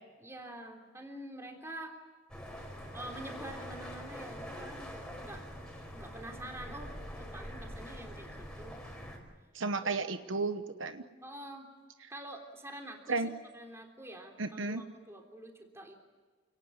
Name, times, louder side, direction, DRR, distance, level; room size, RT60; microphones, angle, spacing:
voice 1, 0.2-2.0 2.9-5.4 5.9-8.8 9.1-9.2 9.8-10.0 11.2-11.7 12.1-16.0, right 1 dB, 15° right, 2 dB, 3.5 m, -47 dB
sound 1, 2.3-9.2, equal, 5° left, 4.8 m, -44 dB
voice 2, 9.5-11.0 13.1-13.3 14.4-14.8, right 3 dB, 65° right, 9 dB, 1.0 m, -33 dB
29.0 x 18.5 x 9.5 m, 1.4 s
head